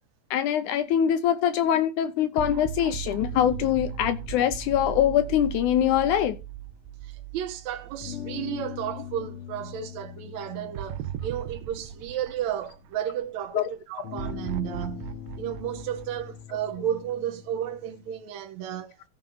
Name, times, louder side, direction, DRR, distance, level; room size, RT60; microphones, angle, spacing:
voice 1, 0.3-6.4 13.5-13.6, left 10 dB, 75° left, 1.9 m, -23 dB
sound 1, 2.4-8.7 9.1-9.2 10.8-13.2 14.2-16.9, right 12 dB, 90° right, 2.6 m, -38 dB
sound 2, 3.3-7.2 8.0-13.1 14.0-18.2, left 10 dB, 60° left, 1.5 m, -43 dB
voice 2, 7.0-15.1 15.4-19.0, right 10 dB, 70° right, 1.8 m, -33 dB
15.0 x 5.5 x 3.9 m
omnidirectional pair, 4.2 m